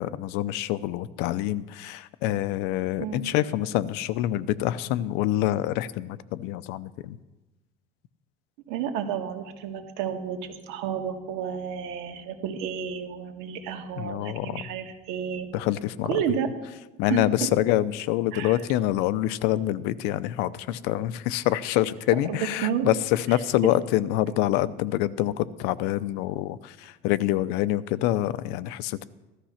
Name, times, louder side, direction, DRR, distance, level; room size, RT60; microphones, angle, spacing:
voice 1, 0.0-7.2 14.0-14.6 15.5-16.2 17.0-29.0, left 14 dB, 70° left, 16 dB, 0.7 m, -26 dB
voice 2, 8.7-15.5 16.1-16.5 17.1-17.2 18.3-18.6 22.3-22.9, right 8 dB, 80° right, 3 dB, 2.2 m, -31 dB
15.5 x 13.0 x 5.8 m, 1.1 s
cardioid pair, 175°, 18 cm